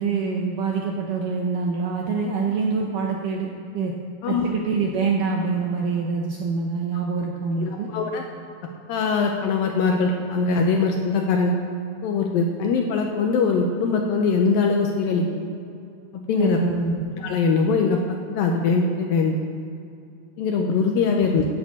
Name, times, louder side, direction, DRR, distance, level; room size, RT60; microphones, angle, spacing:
voice 1, 0.0-3.9 4.3-7.9 16.3-16.9, right 4 dB, 80° right, 0 dB, 1.9 m, -25 dB
voice 2, 7.6-8.2 8.9-11.6 12.0-15.5 16.1-16.6 17.2-19.4 20.4-21.5, left 4 dB, 80° left, 2 dB, 2.1 m, -22 dB
11.0 x 6.5 x 8.2 m, 2.5 s
omnidirectional pair, 4.9 m